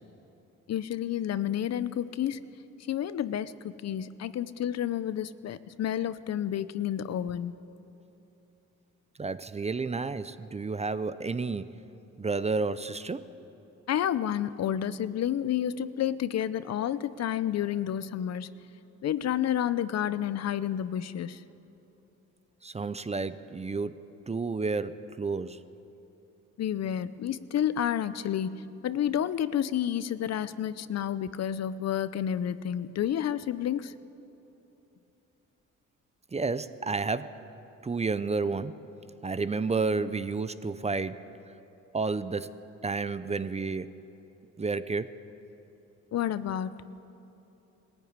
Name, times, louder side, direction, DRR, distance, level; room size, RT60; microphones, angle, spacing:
voice 1, 0.7-2.4 2.9-3.5 3.8-7.5 13.9-18.5 19.0-21.4 26.6-33.9 46.1-46.8, left 10 dB, 60° left, 0.7 m, -30 dB
voice 2, 9.2-11.7 12.2-13.3 22.6-24.0 24.3-25.6 36.3-37.4 37.8-38.8 39.2-41.3 41.9-42.5 42.8-43.9 44.6-45.1, right 4 dB, 20° right, 0.6 m, -31 dB
19.5 x 15.0 x 9.6 m
cardioid pair, 90°, 30 cm